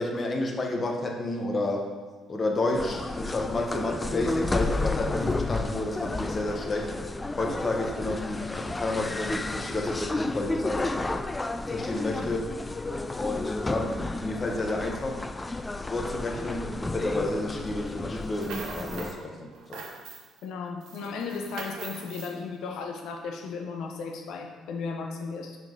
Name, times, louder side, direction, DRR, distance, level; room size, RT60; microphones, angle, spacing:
voice 1, 0.0-1.9 2.3-6.9 7.4-11.0 11.7-12.6 13.1-15.2 15.9-19.9, left 2 dB, 35° left, 2 dB, 1.1 m, -31 dB
sound 1, 2.7-19.1, left 2 dB, 20° left, 0.3 m, -32 dB
sound 2, 18.2-19.2 19.5-20.4 20.8-22.3, right 4 dB, 65° right, 0.9 m, -41 dB
voice 2, 20.4-25.6, left 5 dB, 65° left, 3 dB, 0.8 m, -35 dB
5.4 x 5.2 x 3.8 m, 1.4 s
hypercardioid pair, 50°, 0 cm